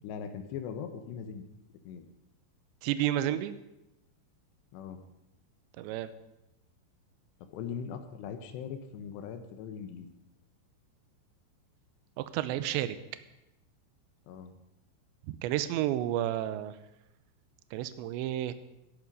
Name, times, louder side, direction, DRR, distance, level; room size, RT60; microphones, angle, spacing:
voice 1, 0.0-1.4 1.8-2.1 4.7-5.0 7.5-10.1 14.3-14.5, left 7 dB, 75° left, 8 dB, 3.1 m, -40 dB
voice 2, 2.8-3.6 5.8-6.1 12.2-13.0 15.3-16.8 17.7-18.5, right 13 dB, 80° right, 13 dB, 2.9 m, -31 dB
14.5 x 11.0 x 5.4 m, 0.91 s
omnidirectional pair, 5.3 m